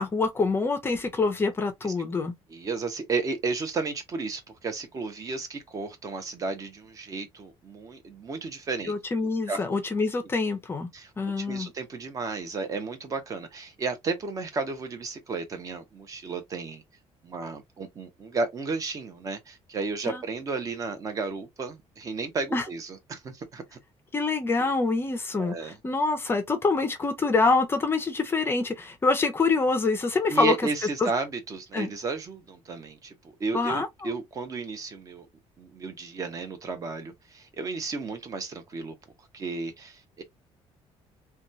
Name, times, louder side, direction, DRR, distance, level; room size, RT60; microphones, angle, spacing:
voice 1, 0.0-2.3 8.9-10.9 11.2-11.7 20.1-20.2 22.5-22.6 24.1-25.6 25.8-30.5 31.0-31.1 31.7-31.9 33.5-34.1, left 3 dB, 20° left, 0.5 m, -25 dB
voice 2, 2.5-8.9 9.5-9.6 10.9-11.1 11.4-16.8 17.2-23.8 24.6-24.7 25.4-25.8 30.3-35.3 35.6-38.9 39.3-40.2, right 4 dB, 30° right, 0.8 m, -33 dB
2.9 x 2.2 x 2.5 m
cardioid pair, 165°, 12 cm